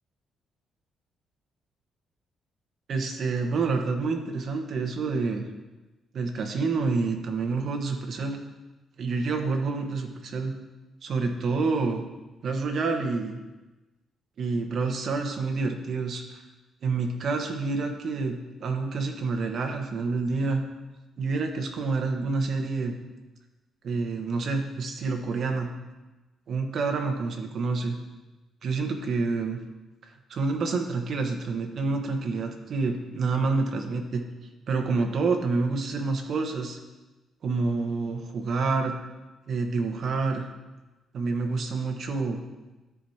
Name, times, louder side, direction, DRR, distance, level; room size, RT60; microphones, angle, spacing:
voice 1, 2.9-5.4 6.1-8.4 9.0-10.5 11.0-12.0 12.4-13.4 14.4-16.4 16.8-20.6 21.2-23.0 23.8-25.7 26.5-27.9 28.6-29.6 30.3-34.2 34.7-36.8 37.4-39.0 39.5-40.5 41.1-42.4, right 4 dB, 60° right, 3 dB, 1.2 m, -28 dB
14.5 x 4.8 x 2.9 m, 1.1 s
cardioid pair, 90°, 0 cm